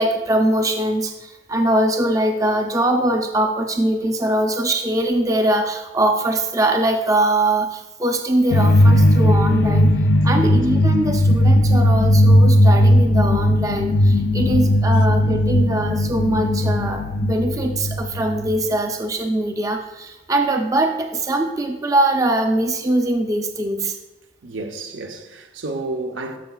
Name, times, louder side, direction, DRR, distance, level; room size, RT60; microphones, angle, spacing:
voice 1, 0.0-9.9 10.2-24.0, right 1 dB, 15° right, 0.4 m, -22 dB
sound 1, 8.5-18.7, left 1 dB, 60° left, 0.4 m, -17 dB
voice 2, 24.4-26.4, right 2 dB, 90° right, 0.8 m, -31 dB
12.5 x 5.7 x 2.3 m
head